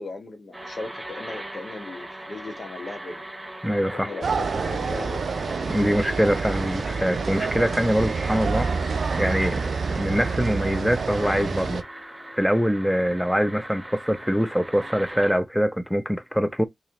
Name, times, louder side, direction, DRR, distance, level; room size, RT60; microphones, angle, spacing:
voice 1, 0.0-3.2 3.9-5.3, left 3 dB, 60° left, 1.3 m, -37 dB
sound 1, 0.5-15.4, right 1 dB, 20° right, 1.3 m, -39 dB
voice 2, 3.6-4.1 5.7-8.7 9.2-11.8 12.3-16.6, equal, 5° left, 0.7 m, -24 dB
sound 2, 4.0-14.5, left 3 dB, 90° left, 1.3 m, -45 dB
sound 3, 4.2-11.8, right 5 dB, 80° right, 0.3 m, -28 dB
3.2 x 2.8 x 3.7 m
cardioid pair, 45°, 0 cm